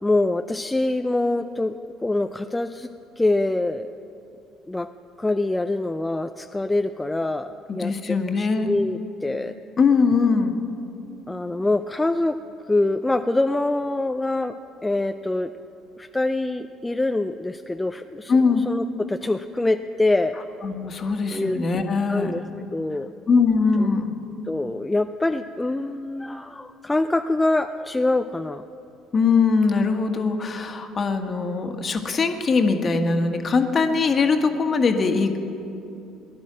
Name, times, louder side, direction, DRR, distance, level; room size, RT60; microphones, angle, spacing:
voice 1, 0.0-2.9 3.2-3.9 4.7-4.9 5.2-9.6 11.3-12.4 12.7-14.6 14.8-15.5 16.0-18.3 18.7-20.4 21.3-21.6 22.1-22.4 22.7-23.1 24.5-28.7, left 2 dB, 15° left, 8 dB, 0.5 m, -24 dB
voice 2, 7.7-8.7 9.8-10.5 18.3-18.6 20.6-22.4 23.3-24.1 29.1-35.4, left 4 dB, 40° left, 6 dB, 1.6 m, -21 dB
19.0 x 11.5 x 6.2 m, 2.7 s
figure-of-eight pair, 55°, 0 cm